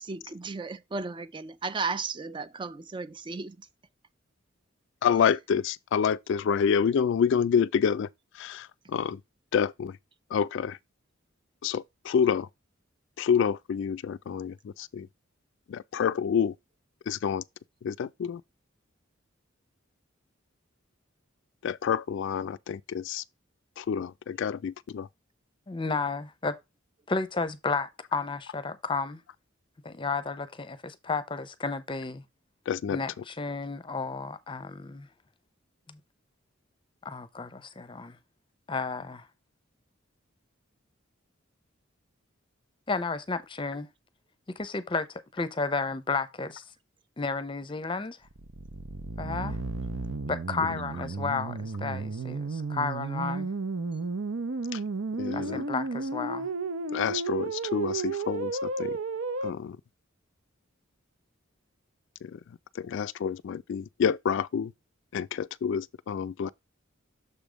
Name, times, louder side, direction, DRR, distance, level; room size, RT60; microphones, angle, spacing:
voice 1, 0.0-3.7, right 4 dB, 25° right, 0.3 m, -35 dB
voice 2, 5.0-8.1 8.3-9.2 9.5-10.0 10.3-10.8 11.6-12.5 13.2-15.1 15.7-16.5 17.1-17.4 17.8-18.4 21.6-23.2 23.8-25.1 32.7-33.0 54.7-54.8 55.2-55.6 56.9-59.0 59.4-59.8 62.2-62.4 62.8-64.7 65.1-66.5, left 7 dB, 60° left, 0.3 m, -28 dB
voice 3, 25.7-26.5 27.1-29.2 29.8-32.2 32.9-35.1 35.9-36.0 37.0-38.2 38.7-39.3 42.9-43.9 44.6-46.6 47.2-48.2 49.2-49.6 50.3-53.5 55.3-56.5, left 4 dB, 25° left, 0.6 m, -32 dB
sound 1, 48.2-59.5, right 3 dB, 80° right, 0.8 m, -33 dB
6.8 x 3.5 x 5.0 m
head